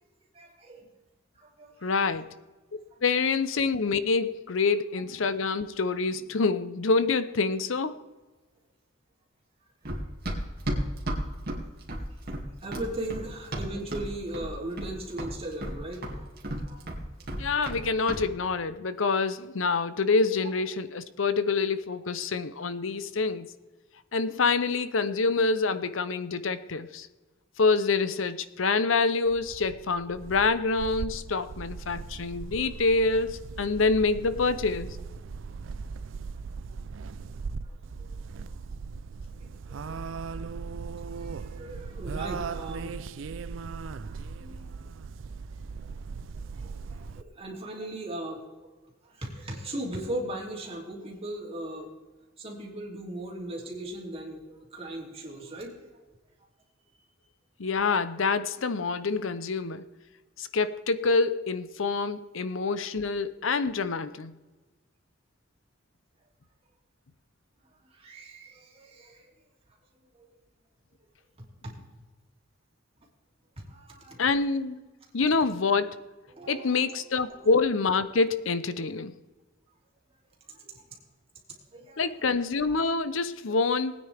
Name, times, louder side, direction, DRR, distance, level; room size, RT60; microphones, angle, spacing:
voice 1, 0.3-0.9 1.4-2.1 2.9-3.0 12.6-16.8 37.6-38.1 38.4-38.5 39.4-40.0 41.0-43.0 43.7-44.7 45.8-45.9 46.6-48.7 49.0-51.9 52.4-56.1 67.9-69.3 70.1-70.3 71.4-71.8 73.6-74.4 75.3-75.4 76.3-77.5 80.5-80.8 81.7-82.0, right 1 dB, 30° right, 2.9 m, -39 dB
voice 2, 1.8-2.3 3.0-8.0 17.4-23.5 24.1-27.1 27.6-35.0 57.6-59.8 60.4-64.3 74.2-74.8 75.1-76.0 76.5-79.1 82.0-83.9, left 4 dB, 85° left, 0.7 m, -26 dB
Run, 9.9-14.1 14.3-14.9 15.2-17.8 18.1-18.3, right 1 dB, 50° right, 2.4 m, -33 dB
sound 1, 29.3-47.2, right 4 dB, 75° right, 0.5 m, -39 dB
20.0 x 9.4 x 3.5 m
head